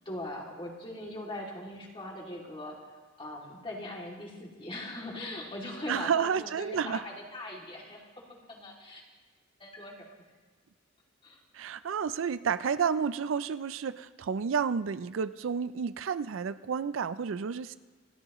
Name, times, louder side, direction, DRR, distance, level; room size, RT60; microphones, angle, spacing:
voice 1, 0.0-2.8 3.2-8.0 8.5-9.0 9.6-10.1 11.2-11.4, left 1 dB, 25° left, -2 dB, 2.7 m, -40 dB
voice 2, 5.9-7.0 11.5-17.7, right 6 dB, 75° right, 14 dB, 0.4 m, -31 dB
27.5 x 12.5 x 3.1 m, 1.4 s
head